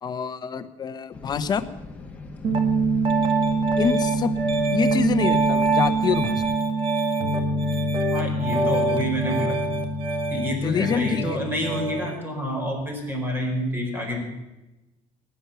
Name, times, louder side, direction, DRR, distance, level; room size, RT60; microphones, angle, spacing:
voice 1, 0.0-1.7 3.8-4.3 4.7-6.4 10.6-11.4, left 7 dB, 30° left, 10 dB, 1.0 m, -26 dB
sound 1, 1.1-6.6, left 2 dB, 10° left, 1.9 m, -41 dB
Piano, 2.4-12.1, right 3 dB, 40° right, 1.8 m, -24 dB
voice 2, 8.1-9.7 10.3-14.2, equal, 15° right, 1 dB, 4.7 m, -28 dB
19.5 x 10.5 x 7.0 m, 1.0 s
cardioid pair, 170°, 14 cm